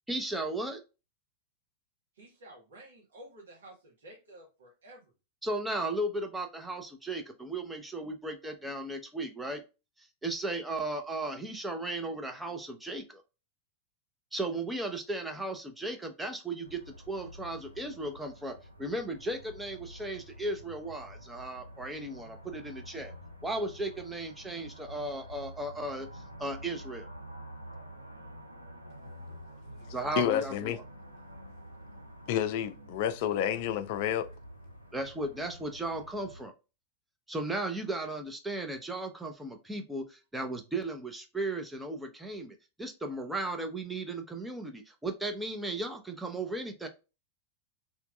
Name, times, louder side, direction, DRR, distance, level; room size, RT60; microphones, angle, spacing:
voice 1, 0.1-0.8 5.4-9.6 10.2-13.2 14.3-23.1 23.4-27.1 29.9-30.8 34.9-36.5 37.3-46.9, right 2 dB, 5° right, 0.7 m, -36 dB
voice 2, 2.2-5.1 29.7-30.2, right 1 dB, 65° right, 1.2 m, -53 dB
sound 1, 16.6-36.5, equal, 90° right, 0.5 m, -48 dB
voice 3, 30.2-30.8 32.3-34.3, left 10 dB, 50° left, 0.4 m, -29 dB
3.4 x 2.9 x 2.2 m
figure-of-eight pair, 90°, 0 cm